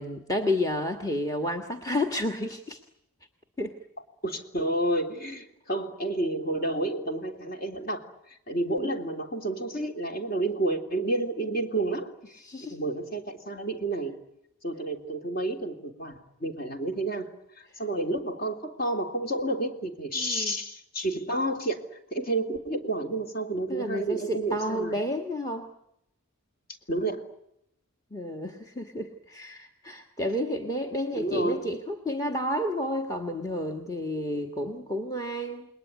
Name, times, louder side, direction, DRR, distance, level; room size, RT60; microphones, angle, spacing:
voice 1, 0.0-2.8 3.6-3.7 8.6-8.9 12.4-12.8 20.1-20.6 23.7-25.7 28.1-35.7, left 1 dB, 15° left, 5 dB, 1.5 m, -31 dB
voice 2, 4.2-12.1 12.7-14.2 14.6-17.3 17.5-25.0 26.9-27.2 31.1-31.7, right 2 dB, 40° left, 4 dB, 3.2 m, -30 dB
28.5 x 21.0 x 9.5 m, 0.80 s
head